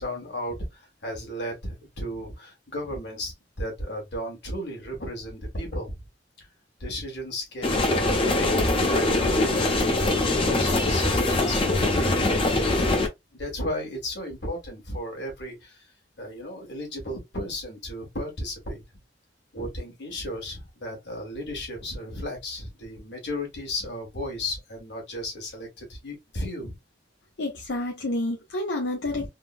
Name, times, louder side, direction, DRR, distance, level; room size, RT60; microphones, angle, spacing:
voice 1, 0.0-6.0 6.4-6.5 6.8-9.6 10.0-12.3 13.3-15.9 16.2-18.8 19.5-26.7 29.0-29.3, equal, 70° left, 1.5 m, -34 dB
sound 1, 7.6-13.1, left 2 dB, 30° left, 0.6 m, -23 dB
voice 2, 27.4-29.3, left 2 dB, 90° left, 0.7 m, -29 dB
3.6 x 2.2 x 2.3 m
head